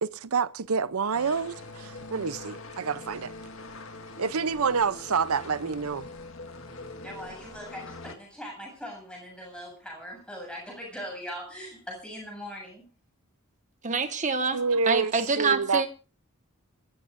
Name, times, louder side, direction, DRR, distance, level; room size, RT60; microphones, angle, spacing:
voice 1, 0.0-3.3 4.2-6.1 14.5-15.9, right 5 dB, 85° right, 0.7 m, -28 dB
sound 1, 1.1-8.1, left 3 dB, 70° left, 1.8 m, -43 dB
voice 2, 6.8-12.8, equal, 5° left, 8.0 m, -41 dB
voice 3, 13.8-14.6 14.9-15.9, right 4 dB, 35° right, 1.5 m, -26 dB
26.5 x 14.5 x 2.6 m
head